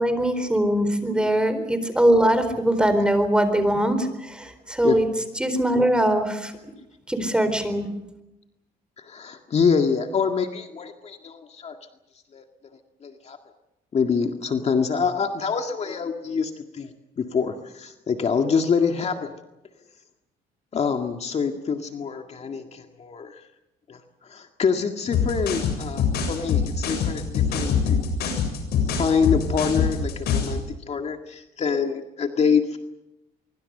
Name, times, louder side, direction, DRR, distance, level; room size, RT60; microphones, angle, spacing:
voice 1, 0.0-5.1 5.4-6.5 7.1-7.9, right 1 dB, 5° right, 10 dB, 4.2 m, -21 dB
voice 2, 9.0-11.8 12.3-12.4 13.0-13.4 13.9-19.3 20.7-23.4 23.9-28.4 28.8-32.8, left 5 dB, 40° left, 5 dB, 2.0 m, -26 dB
sound 1, 25.1-30.6, left 7 dB, 70° left, 7.4 m, -24 dB
24.5 x 24.0 x 6.7 m, 0.92 s
cardioid pair, 110°, 17 cm